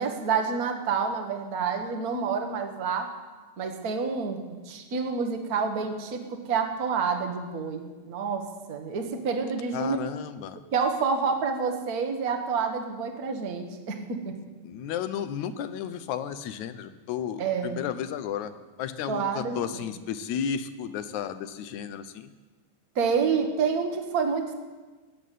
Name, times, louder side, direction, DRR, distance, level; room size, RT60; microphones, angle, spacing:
voice 1, 0.0-3.1 3.6-4.4 4.7-10.0 10.7-14.3 17.4-17.8 19.1-19.6 22.9-24.5, right 5 dB, 45° right, 5 dB, 1.3 m, -28 dB
voice 2, 9.7-10.6 14.6-18.5 18.8-22.3, left 8 dB, 75° left, 11 dB, 2.1 m, -33 dB
14.0 x 8.2 x 9.1 m, 1.3 s
omnidirectional pair, 3.5 m